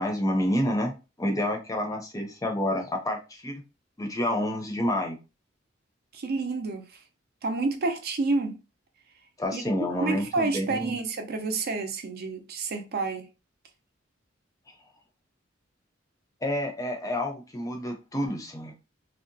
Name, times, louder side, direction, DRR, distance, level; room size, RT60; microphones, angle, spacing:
voice 1, 0.0-3.6 4.0-5.2 9.4-10.9 16.4-18.8, left 1 dB, 15° left, 0.6 m, -29 dB
voice 2, 6.1-6.9 7.4-8.6 9.5-9.6 10.0-13.3, right 3 dB, 50° right, 0.5 m, -29 dB
2.7 x 2.0 x 2.6 m
head